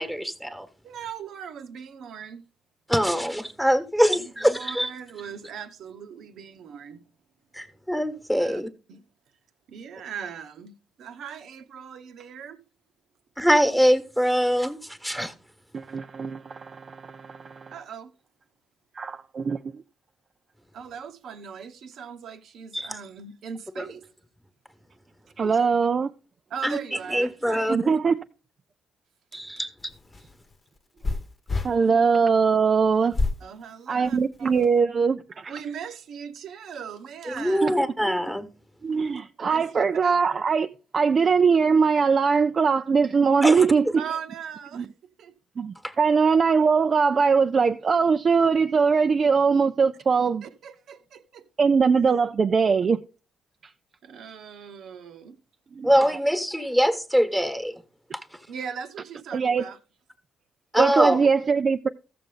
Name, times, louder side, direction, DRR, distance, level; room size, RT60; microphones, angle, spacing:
voice 1, 0.0-0.7 2.9-4.9 7.5-8.7 13.4-15.3 22.7-23.0 23.8-23.9 26.6-26.8 27.1-28.0 29.3-29.9 37.3-38.5 43.4-43.9 45.8-45.9 55.8-57.8 58.1-58.5 60.7-61.3, equal, ahead, 1.3 m, -24 dB
voice 2, 0.8-2.4 4.1-4.2 4.5-7.0 8.4-8.6 8.9-9.0 9.7-12.6 17.7-18.1 20.7-24.0 25.4-25.6 26.5-27.7 29.3-29.4 33.4-34.6 35.5-37.8 39.5-40.2 44.0-44.9 45.2-45.3 50.4-51.5 54.0-55.4 58.5-59.8, right 7 dB, 70° right, 0.9 m, -39 dB
voice 3, 15.7-17.7 18.9-19.8 25.4-26.1 27.7-28.2 31.6-33.2 33.9-35.5 37.6-37.7 38.8-40.7 40.9-43.8 44.7-44.8 45.6-50.4 51.6-53.0 55.8-55.9 59.3-59.6 60.8-61.9, right 5 dB, 45° right, 0.4 m, -21 dB
sound 1, 29.8-31.7 33.1-33.4 34.1-34.7, left 3 dB, 30° left, 1.0 m, -28 dB
14.0 x 6.8 x 3.8 m
cardioid pair, 90°, 0 cm